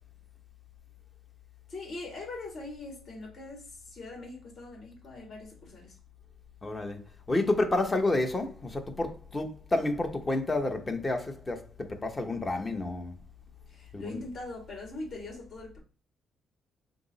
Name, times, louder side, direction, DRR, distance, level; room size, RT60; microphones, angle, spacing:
voice 1, 1.7-6.0 13.7-15.8, left 2 dB, 50° left, 1.9 m, -42 dB
voice 2, 6.6-13.1 13.9-14.2, left 2 dB, 25° left, 0.9 m, -30 dB
5.8 x 2.0 x 4.0 m
cardioid pair, 90°, 0 cm